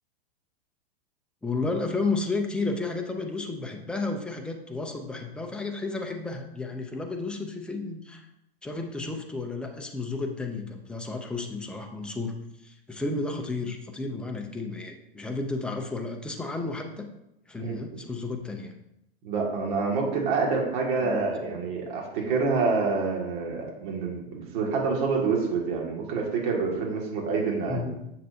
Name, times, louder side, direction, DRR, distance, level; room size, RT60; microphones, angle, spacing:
voice 1, 1.4-8.3 8.6-12.4 12.6-17.1 17.5-18.7 21.0-21.3 27.7-28.0, left 3 dB, 5° left, 3 dB, 0.5 m, -32 dB
voice 2, 17.6-18.0 19.2-27.9, right 4 dB, 50° right, -1 dB, 2.2 m, -27 dB
7.4 x 6.6 x 2.8 m, 0.84 s
hypercardioid pair, 140°, 30 cm